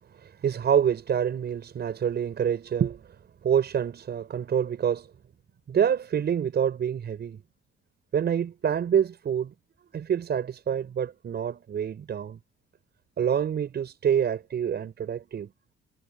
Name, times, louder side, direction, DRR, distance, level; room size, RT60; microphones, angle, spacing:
voice 1, 0.0-5.1 5.7-7.4 8.1-9.5 9.9-12.4 13.2-15.5, right 8 dB, 55° right, 6.0 m, -27 dB
cardioid pair, 90°, 20 cm